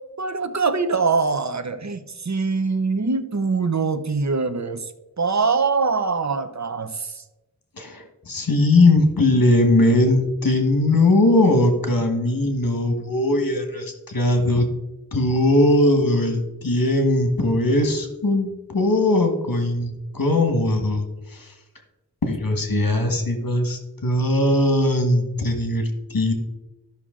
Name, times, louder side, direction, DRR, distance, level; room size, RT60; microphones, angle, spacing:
voice 1, 0.2-2.0 2.3-4.8 5.2-6.9, right 4 dB, 45° right, 0.8 m, -23 dB
voice 2, 7.8-14.7 15.1-21.5 22.2-26.3, left 1 dB, 65° left, 1.6 m, -20 dB
13.0 x 5.9 x 3.8 m
wide cardioid pair, 50°, 37 cm